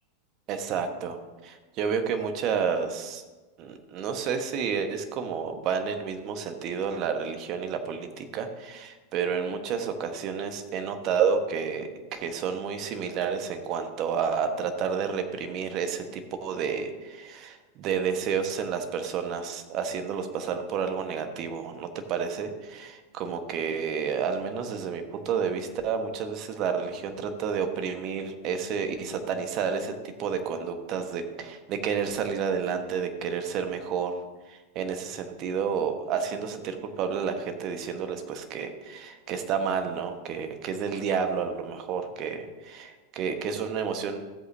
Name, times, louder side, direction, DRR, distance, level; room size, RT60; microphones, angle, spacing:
voice 1, 0.5-3.2 3.6-34.2 34.5-44.2, right 6 dB, 45° right, 7 dB, 1.3 m, -30 dB
15.0 x 8.1 x 2.8 m, 1.2 s
hypercardioid pair, 95°, 0 cm